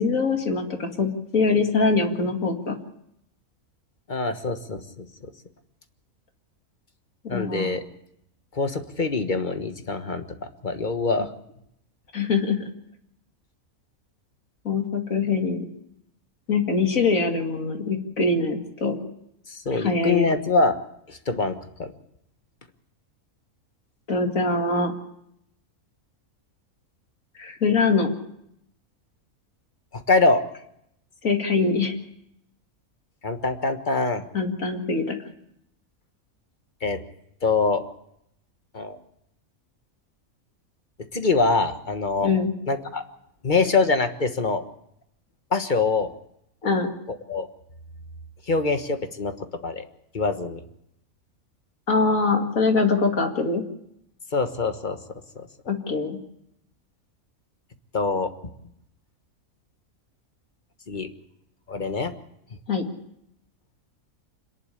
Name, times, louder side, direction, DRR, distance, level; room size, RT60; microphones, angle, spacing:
voice 1, 0.0-2.8 7.2-7.8 12.1-12.6 14.6-15.7 16.5-19.0 19.7-20.3 24.1-24.9 27.4-28.1 31.2-31.9 34.3-35.2 42.2-42.5 46.6-46.9 51.9-53.6 55.7-56.2 62.7-62.9, left 4 dB, 70° left, 4 dB, 2.6 m, -23 dB
voice 2, 4.1-4.8 7.3-7.8 8.5-10.2 10.6-11.3 19.5-20.8 21.1-21.9 29.9-30.4 33.2-34.2 36.8-37.0 37.4-37.8 38.7-39.0 41.1-42.3 42.7-43.0 43.4-44.6 45.5-46.1 47.3-47.5 48.5-49.3 49.6-49.8 50.1-50.6 54.3-55.0 55.4-55.5 57.9-58.3 60.9-61.1 61.7-62.1, left 3 dB, 35° left, 8 dB, 1.4 m, -24 dB
26.5 x 11.0 x 9.9 m, 0.78 s
omnidirectional pair, 1.5 m